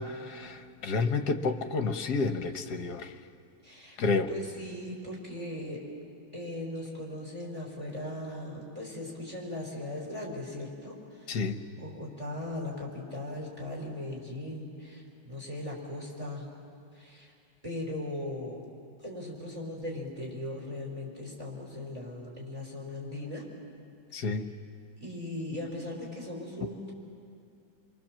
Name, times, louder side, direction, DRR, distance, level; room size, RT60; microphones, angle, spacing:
voice 1, 0.0-3.1 4.0-4.3 11.3-11.6 24.1-24.5, left 4 dB, 55° left, 9 dB, 1.4 m, -30 dB
voice 2, 3.6-4.0 4.3-5.8 6.3-11.3 11.7-16.5 16.9-17.3 17.6-18.6 19.0-23.4 25.0-26.9, left 1 dB, 15° right, -1 dB, 4.8 m, -38 dB
28.5 x 23.0 x 7.5 m, 2.5 s
omnidirectional pair, 2.3 m